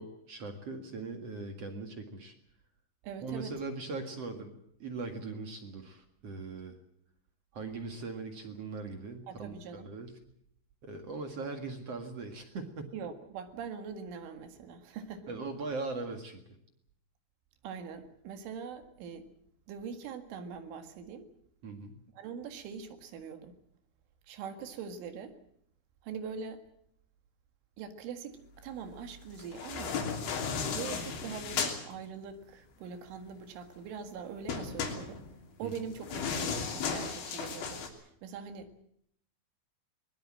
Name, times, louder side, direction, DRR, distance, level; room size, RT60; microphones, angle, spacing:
voice 1, 0.0-2.3 3.2-6.8 7.5-10.1 10.8-13.0 15.3-16.4 21.6-21.9 35.6-35.7, right 3 dB, 50° right, 5 dB, 2.0 m, -40 dB
voice 2, 3.0-3.5 9.3-9.9 12.9-15.3 17.6-19.3 19.7-21.3 22.1-23.6 24.3-25.4 26.0-26.6 27.8-30.0 30.6-35.2 35.6-38.8, right 6 dB, 85° right, 7 dB, 4.4 m, -42 dB
sound 1, 29.4-31.8 34.5-37.9, left 6 dB, 70° left, 5.4 m, -35 dB
22.0 x 21.5 x 7.6 m, 0.71 s
omnidirectional pair, 5.4 m